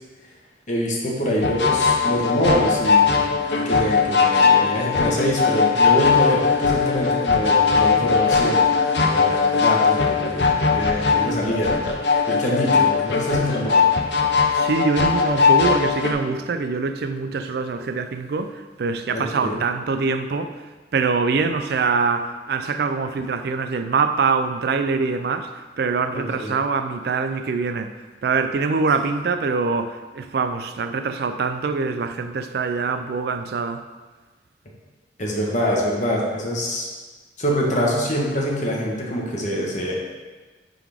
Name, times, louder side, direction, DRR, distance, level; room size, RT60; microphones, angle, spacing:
voice 1, 0.7-3.3 3.5-8.6 9.0-11.7 12.3-13.8 19.1-19.6 26.1-26.6 35.2-36.9 37.4-39.9, equal, 45° left, -2 dB, 1.2 m, -25 dB
sound 1, 1.4-16.1, left 5 dB, 70° left, 0.7 m, -19 dB
voice 2, 14.5-20.5 20.9-25.5 25.8-27.9 28.2-33.8, right 4 dB, 60° right, 8 dB, 0.4 m, -24 dB
9.4 x 3.8 x 3.5 m, 1.3 s
head